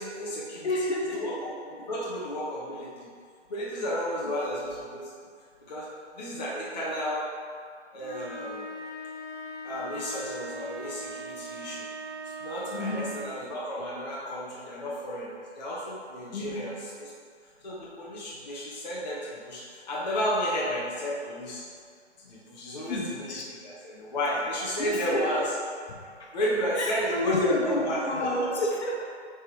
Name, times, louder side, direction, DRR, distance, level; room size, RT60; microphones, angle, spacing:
voice 1, 0.0-0.7 1.1-3.1 3.5-5.1 5.7-5.9 6.2-7.3 7.9-8.7 9.6-11.8 12.4-17.1 17.6-21.6 22.2-25.4 26.3-28.5, equal, 35° left, -6 dB, 0.9 m, -32 dB
voice 2, 0.6-1.3 12.7-13.1 16.3-16.7 22.8-23.5 24.8-25.3 26.0-26.3 26.8-29.1, left 1 dB, 65° left, -2 dB, 1.3 m, -30 dB
sound 1, 8.0-13.5, right 1 dB, 35° right, 0.5 m, -40 dB
6.3 x 3.6 x 4.6 m, 2.1 s
hypercardioid pair, 170°, 36 cm